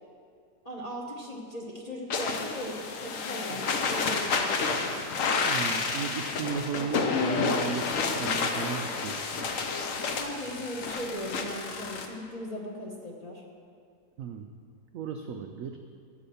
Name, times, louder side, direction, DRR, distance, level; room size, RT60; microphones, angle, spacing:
voice 1, 0.6-4.9 10.1-13.4, equal, 25° left, -1 dB, 0.9 m, -38 dB
sound 1, 2.1-12.1, left 4 dB, 55° left, 1.0 m, -30 dB
voice 2, 5.4-9.5 14.2-14.5 14.9-15.8, right 7 dB, 80° right, 5 dB, 0.7 m, -35 dB
14.0 x 4.9 x 7.0 m, 2.3 s
omnidirectional pair, 2.0 m